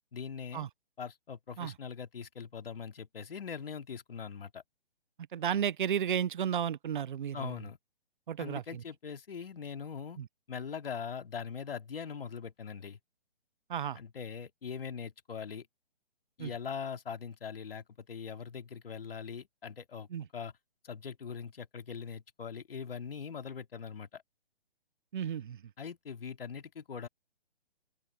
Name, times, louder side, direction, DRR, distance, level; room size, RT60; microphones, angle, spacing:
voice 1, 0.1-0.7 1.0-4.6 7.3-7.8 8.4-10.2 10.5-13.0 13.9-15.7 16.4-20.1 20.3-20.5 20.8-24.2 25.8-27.1, left 6 dB, 65° left, 2.5 m, -41 dB
voice 2, 5.3-7.5 8.3-8.8 10.2-10.3 13.7-14.0 16.4-16.5 20.1-20.2 25.1-25.6, right 9 dB, 50° right, 0.9 m, -33 dB
open air
figure-of-eight pair, 140°, 31 cm